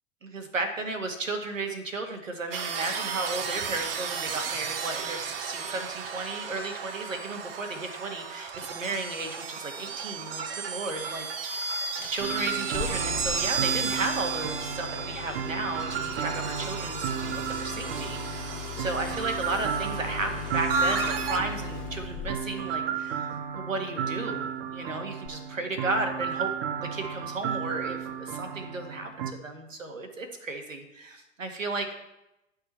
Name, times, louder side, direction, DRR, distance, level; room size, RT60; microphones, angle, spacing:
voice 1, 0.2-23.3 23.5-26.5 26.9-29.1 29.4-31.9, right 2 dB, 80° right, 5 dB, 1.7 m, -34 dB
sound 1, 2.5-21.4, right 5 dB, 45° right, 1.0 m, -34 dB
Engine starting, 12.0-22.6 25.2-25.3, left 10 dB, 20° left, 0.7 m, -40 dB
sound 2, 12.2-29.3, right 8 dB, 20° right, 0.4 m, -34 dB
10.5 x 5.6 x 4.2 m, 0.92 s
figure-of-eight pair, 105°, 38 cm